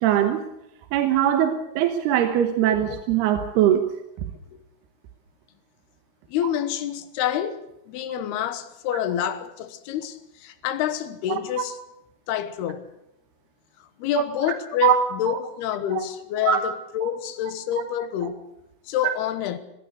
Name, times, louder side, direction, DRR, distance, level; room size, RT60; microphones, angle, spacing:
voice 1, 0.0-0.4 0.9-3.9 11.3-11.7 14.1-14.2 14.8-15.4 15.9-16.0 16.4-16.6 17.0-17.1 19.0-19.1, right 11 dB, 85° right, 3.2 m, -22 dB
voice 2, 6.3-7.6 7.9-11.8 12.3-12.8 14.0-18.4 18.9-19.6, left 10 dB, 90° left, 3.2 m, -27 dB
21.5 x 16.0 x 8.2 m
omnidirectional pair, 4.5 m